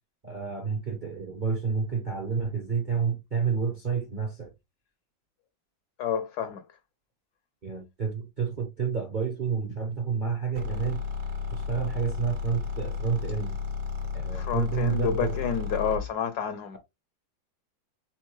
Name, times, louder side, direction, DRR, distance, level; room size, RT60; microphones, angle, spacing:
voice 1, 0.2-4.5 7.6-11.0 11.5-13.5 14.1-15.3, right 6 dB, 50° right, 0.5 m, -29 dB
voice 2, 6.0-6.7 14.3-16.8, left 7 dB, 70° left, 1.0 m, -29 dB
sound 1, 10.6-16.1, left 6 dB, 70° right, 1.8 m, -33 dB
4.4 x 3.5 x 3.1 m
omnidirectional pair, 2.1 m